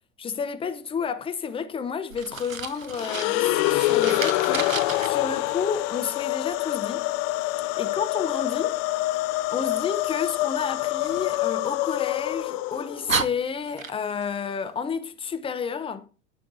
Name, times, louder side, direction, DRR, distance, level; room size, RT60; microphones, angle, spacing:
voice 1, 0.2-7.1 7.4-7.5 7.8-8.8 9.5-16.1, left 6 dB, 15° left, 0.7 m, -31 dB
Fire, 2.1-5.1 11.0-12.2 12.7-12.8 13.1-14.3, right 5 dB, 90° right, 0.6 m, -33 dB
sound 1, 2.9-13.2, left 17 dB, 30° left, 0.3 m, -26 dB
12.5 x 4.4 x 2.8 m
figure-of-eight pair, 80°, 39 cm